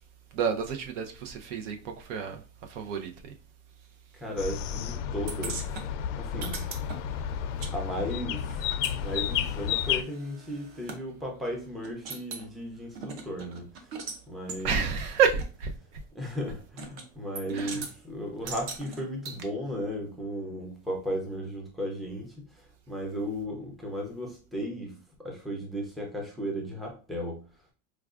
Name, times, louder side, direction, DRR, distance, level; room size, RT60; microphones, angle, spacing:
voice 1, 0.3-3.3 14.6-15.7 17.5-17.8 18.4-18.5, right 6 dB, 75° right, 0.8 m, -29 dB
voice 2, 4.1-6.6 7.7-13.9 14.3-14.8 16.2-27.4, equal, ahead, 0.4 m, -35 dB
sound 1, 4.4-10.0, left 9 dB, 80° left, 0.5 m, -31 dB
sound 2, 5.3-7.7 8.0-11.0 11.5-11.6 11.8-12.5 13.0-14.2 14.5-14.6 15.4-15.5 16.8-17.1 17.4-17.9 18.5-19.4, right 4 dB, 45° right, 0.7 m, -40 dB
4.7 x 2.3 x 2.4 m
supercardioid pair, 155°, 37 cm